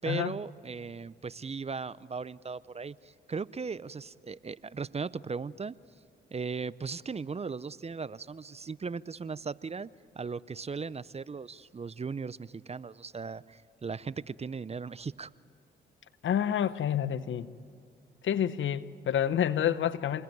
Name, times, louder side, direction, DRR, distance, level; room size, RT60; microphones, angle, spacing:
voice 1, 0.0-5.8 6.3-9.9 10.2-15.3, right 5 dB, 30° right, 0.6 m, -37 dB
voice 2, 16.2-17.5 18.2-20.2, left 9 dB, 70° left, 0.9 m, -28 dB
28.0 x 21.0 x 9.3 m
supercardioid pair, 55°, 21 cm